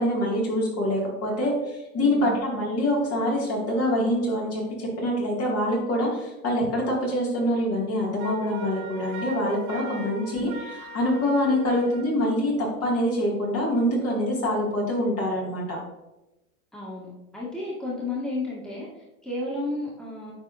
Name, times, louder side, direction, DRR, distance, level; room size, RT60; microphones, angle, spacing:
voice 1, 0.0-10.5 10.9-15.8, left 1 dB, 35° left, -3 dB, 2.1 m, -25 dB
voice 2, 2.0-2.4 10.2-10.5 16.7-20.3, left 2 dB, ahead, -6 dB, 1.8 m, -33 dB
Wind instrument woodwind instrument, 8.2-12.1, right 2 dB, 80° right, 1.2 m, -39 dB
9.2 x 4.1 x 2.6 m, 0.98 s
hypercardioid pair, 110°, 43 cm